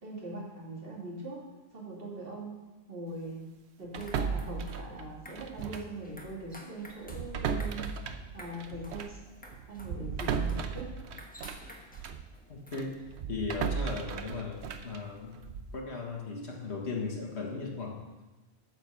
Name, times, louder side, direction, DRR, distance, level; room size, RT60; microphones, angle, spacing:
voice 1, 0.0-1.4 1.7-2.6 2.9-3.5 3.8-7.9 8.3-9.2 9.7-10.9, right 2 dB, 60° right, -4 dB, 2.9 m, -41 dB
sound 1, 3.8-13.2, equal, 10° left, 1.2 m, -53 dB
Final door, 3.9-6.0 6.3-6.5 7.0-12.3 12.7-15.8, right 6 dB, 85° right, 1.0 m, -36 dB
voice 2, 12.5-13.0 13.3-14.6 14.8-15.4 15.7-18.0, left 4 dB, 85° left, 0 dB, 2.0 m, -37 dB
9.1 x 7.1 x 6.8 m, 1.1 s
omnidirectional pair, 1.1 m